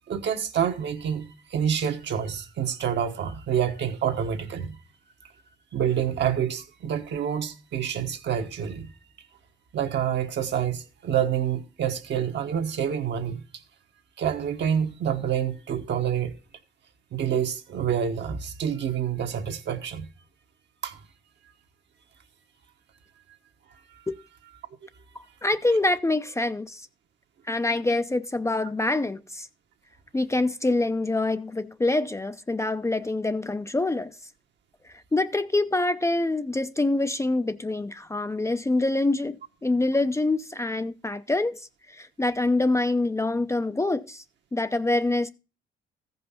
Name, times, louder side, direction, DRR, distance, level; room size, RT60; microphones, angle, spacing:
voice 1, 0.1-4.8 5.2-5.3 5.7-8.9 9.7-13.6 14.2-16.3 17.1-20.1 20.8-21.0, right 8 dB, 65° right, 1.3 m, -27 dB
voice 2, 25.4-26.9 27.5-29.5 30.1-34.1 35.1-41.6 41.9-44.2 44.5-45.3, left 2 dB, 15° left, 0.5 m, -25 dB
14.0 x 5.5 x 5.6 m
cardioid pair, 90°, 20 cm